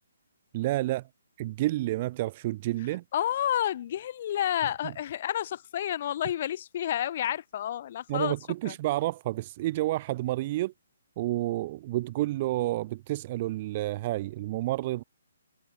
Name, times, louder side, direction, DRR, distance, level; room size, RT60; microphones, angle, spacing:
voice 1, 0.5-1.1 1.4-3.0 8.1-10.7 11.2-15.0, right 16 dB, 35° right, 0.6 m, -30 dB
voice 2, 3.1-8.4 8.7-8.8, left 11 dB, 45° left, 5.2 m, -30 dB
hypercardioid pair, 155°, 0 cm